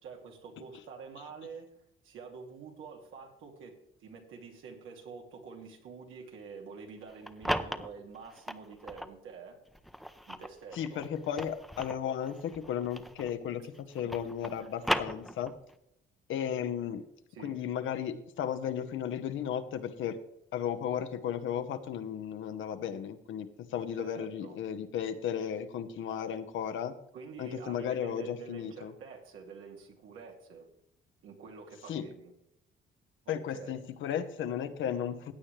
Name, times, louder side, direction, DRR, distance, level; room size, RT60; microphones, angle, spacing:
voice 1, 0.0-1.7 2.0-9.6 10.3-11.0 14.6-14.7 17.3-17.6 23.9-24.6 27.1-30.7 31.2-32.3 33.3-33.8, right 5 dB, 85° right, 1 dB, 2.5 m, -47 dB
sound 1, 7.0-9.2 9.7-13.5 13.7-15.7, equal, ahead, 0.7 m, -37 dB
voice 2, 10.7-15.5 16.3-17.0 17.4-20.2 20.5-26.9 27.4-28.9 31.9-32.1 33.3-35.3, left 9 dB, 80° left, 10 dB, 1.1 m, -35 dB
16.0 x 8.8 x 3.3 m, 0.77 s
cardioid pair, 90°, 20 cm